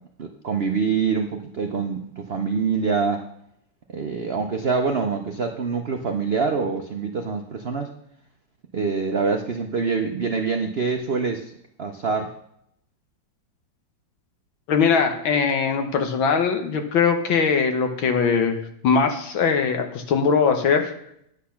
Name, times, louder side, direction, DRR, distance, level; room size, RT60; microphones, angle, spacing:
voice 1, 0.2-3.2 3.9-7.9 8.7-11.5 11.8-12.3, right 5 dB, 70° right, 4 dB, 0.5 m, -25 dB
voice 2, 14.7-20.9, left 5 dB, 90° left, 5 dB, 2.0 m, -21 dB
9.7 x 8.4 x 5.8 m, 0.74 s
omnidirectional pair, 2.1 m